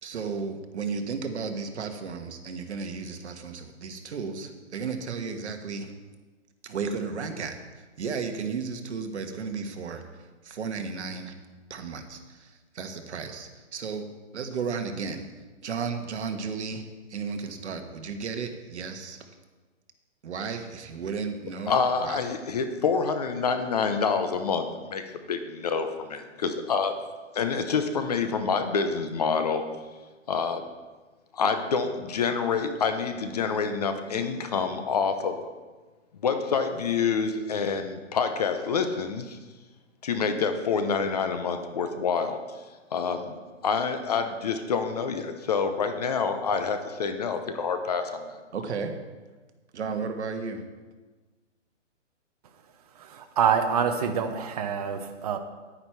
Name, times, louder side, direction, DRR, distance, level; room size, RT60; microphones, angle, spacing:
voice 1, 0.0-5.9 6.6-10.0 10.4-11.3 11.7-15.3 15.6-19.2 20.2-22.2 48.5-49.0 49.7-50.7, right 5 dB, 65° right, 6 dB, 1.5 m, -34 dB
voice 2, 21.7-27.0 27.3-29.7 30.3-30.6 31.3-35.4 36.2-39.4 40.0-42.4 42.9-48.4, left 5 dB, 35° left, 8 dB, 0.7 m, -27 dB
voice 3, 53.0-55.4, right 7 dB, 30° right, 6 dB, 0.8 m, -26 dB
10.0 x 9.7 x 4.6 m, 1.3 s
hypercardioid pair, 165°, 37 cm